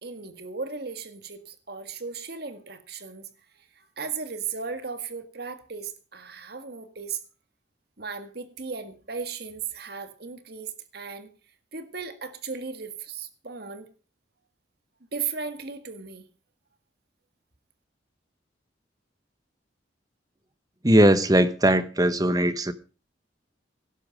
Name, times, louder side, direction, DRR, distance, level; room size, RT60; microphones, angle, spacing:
voice 1, 0.0-3.3 3.7-7.2 8.0-11.3 11.7-13.9 15.1-16.3, right 5 dB, 55° right, 1.7 m, -36 dB
voice 2, 20.8-22.7, right 1 dB, 20° right, 1.1 m, -19 dB
17.5 x 11.5 x 5.2 m
head